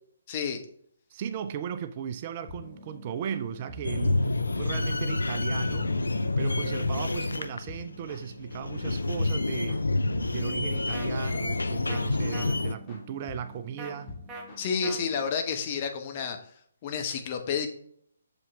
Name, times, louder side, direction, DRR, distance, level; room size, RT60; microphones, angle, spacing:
voice 1, 0.3-0.6 14.6-16.4 16.8-17.7, left 6 dB, 30° left, 1.0 m, -30 dB
voice 2, 1.1-4.3 4.6-6.0 6.4-9.8 10.3-14.1, right 8 dB, 35° right, 0.4 m, -36 dB
sound 1, 2.5-15.3, left 2 dB, 15° left, 2.5 m, -47 dB
sound 2, 3.8-12.7, left 2 dB, 75° left, 0.5 m, -28 dB
sound 3, 10.9-11.1 11.9-12.0 12.3-12.5 13.8-13.9 14.3-14.4 14.8-15.0, right 2 dB, 15° right, 0.9 m, -39 dB
7.0 x 5.2 x 3.5 m
figure-of-eight pair, 140°, 0 cm